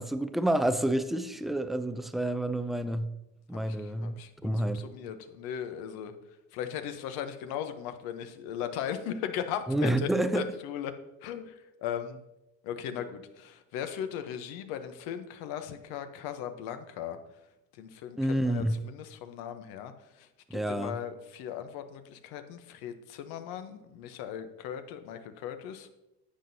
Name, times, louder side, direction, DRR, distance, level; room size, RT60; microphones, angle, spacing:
voice 1, 0.0-3.2 3.5-4.8 9.7-10.5 18.2-18.8 20.5-21.0, right 1 dB, ahead, 0.3 m, -29 dB
voice 2, 3.5-6.1 6.5-10.9 11.2-12.2 12.6-17.2 17.7-25.9, left 9 dB, 75° left, 0.9 m, -38 dB
10.0 x 7.7 x 2.7 m
supercardioid pair, 95°, 37 cm